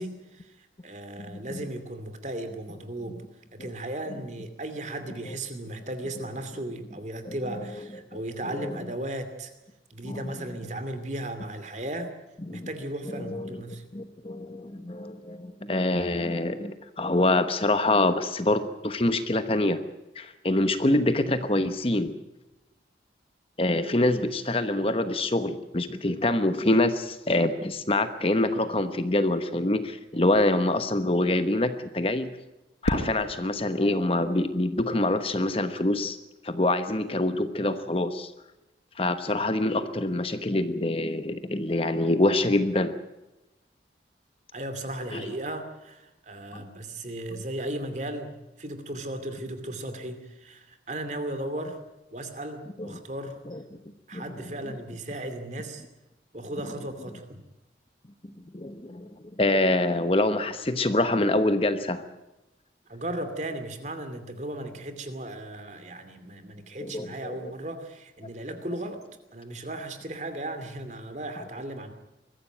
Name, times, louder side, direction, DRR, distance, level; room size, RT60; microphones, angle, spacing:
voice 1, 0.0-3.2 3.5-9.5 9.9-12.1 12.5-13.8 44.5-51.8 52.1-53.4 54.1-55.8 56.3-57.4 62.9-69.0 69.3-71.9, right 1 dB, 40° right, 9 dB, 2.6 m, -36 dB
voice 2, 7.2-7.6 8.5-8.8 10.0-10.2 12.5-12.7 13.1-13.5 13.9-19.8 20.1-22.1 23.6-32.3 32.8-36.2 36.4-38.3 39.0-42.9 45.1-45.2 46.5-46.6 52.8-52.9 53.5-53.6 54.1-54.2 58.5-59.1 59.4-62.0 66.8-67.3, left 1 dB, 30° left, 10 dB, 1.0 m, -25 dB
Fireworks, 32.8-35.0, equal, 85° left, 4.7 m, -33 dB
22.5 x 14.5 x 9.1 m, 0.99 s
head